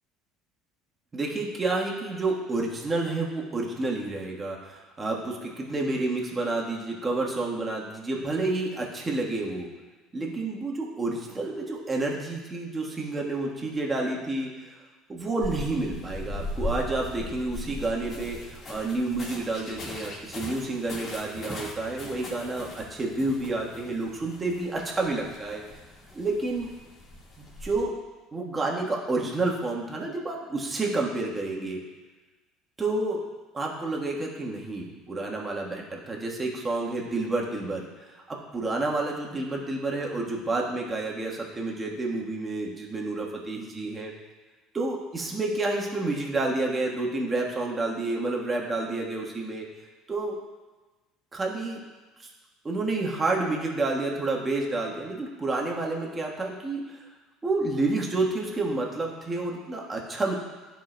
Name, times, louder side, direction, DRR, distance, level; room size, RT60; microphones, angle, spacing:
voice 1, 1.1-9.7 10.1-14.5 15.1-25.6 26.1-26.7 27.4-27.9 28.3-31.8 32.8-33.2 33.5-44.1 44.7-49.7 50.1-50.3 51.3-51.8 52.2-52.3 52.6-57.0 57.4-60.3, right 2 dB, 20° right, -2 dB, 1.3 m, -29 dB
sound 1, 15.4-27.8, left 1 dB, 40° left, 1.6 m, -39 dB
11.0 x 4.6 x 2.2 m, 1.2 s
supercardioid pair, 100°, 0 cm